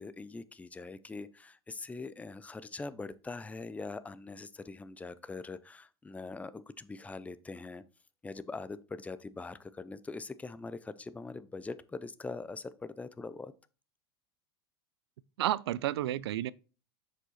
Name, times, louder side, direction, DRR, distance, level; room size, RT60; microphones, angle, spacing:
voice 1, 0.0-7.8 8.2-13.5, left 3 dB, 10° left, 0.5 m, -42 dB
voice 2, 15.4-16.5, right 13 dB, 75° right, 0.4 m, -31 dB
6.2 x 5.1 x 4.1 m
hypercardioid pair, 90°, 13 cm